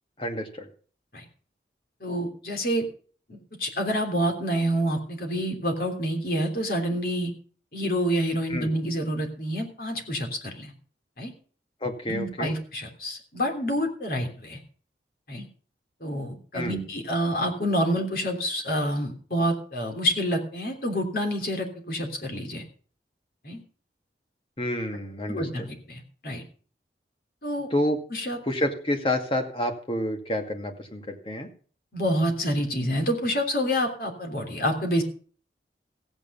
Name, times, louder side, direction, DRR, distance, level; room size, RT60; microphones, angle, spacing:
voice 1, 0.2-0.7 8.5-8.7 11.8-12.5 16.5-16.8 24.6-25.7 27.7-28.0 28.4-31.5, left 1 dB, 30° left, 4 dB, 2.1 m, -29 dB
voice 2, 2.0-2.9 3.3-7.3 7.7-10.7 11.2-11.3 12.1-14.6 15.3-15.5 16.0-22.6 23.4-23.6 25.3-26.4 27.4-27.7 28.1-28.4 31.9-35.0, equal, 55° left, 4 dB, 3.2 m, -28 dB
15.5 x 9.1 x 5.6 m, 0.42 s
head